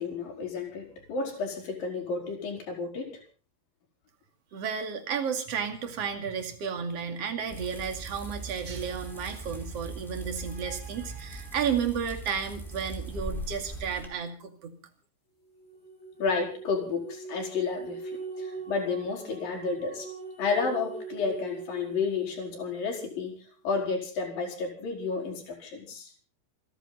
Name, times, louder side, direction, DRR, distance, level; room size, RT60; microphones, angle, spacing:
voice 1, 0.0-3.1 16.2-20.1 20.4-23.3 23.6-26.1, left 4 dB, 60° left, 1 dB, 6.0 m, -31 dB
voice 2, 4.5-14.7, right 7 dB, 45° right, 6 dB, 3.1 m, -32 dB
sound 1, 7.5-14.1, right 2 dB, ahead, 4.0 m, -40 dB
sound 2, 15.5-23.4, right 4 dB, 15° left, 6.9 m, -41 dB
28.5 x 11.5 x 4.1 m, 0.37 s
omnidirectional pair, 4.6 m